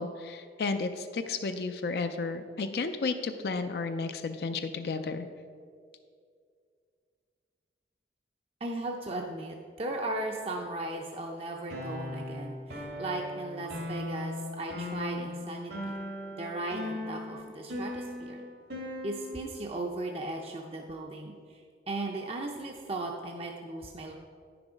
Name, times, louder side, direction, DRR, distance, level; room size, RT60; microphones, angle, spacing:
voice 1, 0.0-5.3, left 4 dB, 60° left, 8 dB, 0.4 m, -32 dB
voice 2, 8.6-16.0 16.4-18.4 19.0-21.6 21.9-24.1, right 2 dB, 35° right, 1 dB, 0.5 m, -37 dB
sound 1, 11.7-19.6, left 1 dB, 80° right, 1.9 m, -38 dB
9.7 x 6.0 x 5.0 m, 2.2 s
head